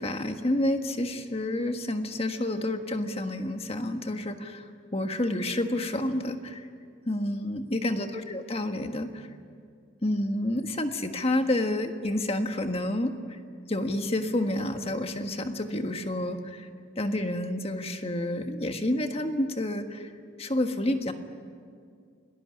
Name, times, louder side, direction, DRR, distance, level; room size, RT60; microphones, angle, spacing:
voice 1, 0.0-6.7 7.1-9.3 10.0-13.4 13.7-16.7 17.0-20.1 20.4-21.1, left 1 dB, 30° left, 6 dB, 1.6 m, -29 dB
29.0 x 19.5 x 9.7 m, 2.2 s
head